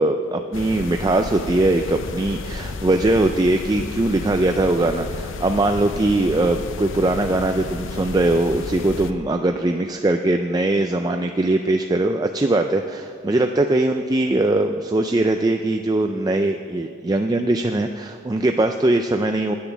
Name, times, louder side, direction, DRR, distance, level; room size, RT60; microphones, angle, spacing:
voice 1, 0.0-19.5, right 2 dB, 20° right, 5 dB, 0.3 m, -21 dB
sound 1, 0.5-9.1, left 3 dB, 75° left, 0.6 m, -32 dB
10.5 x 9.3 x 7.0 m, 2.4 s
head